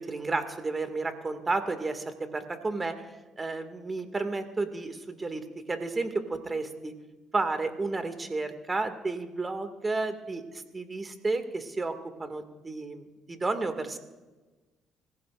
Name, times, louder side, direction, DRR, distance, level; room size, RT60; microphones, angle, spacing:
voice 1, 0.0-2.9 3.4-6.9 7.3-14.0, right 3 dB, 30° right, 7 dB, 2.1 m, -32 dB
25.5 x 15.0 x 2.5 m, 1.2 s
supercardioid pair, 60°, 0 cm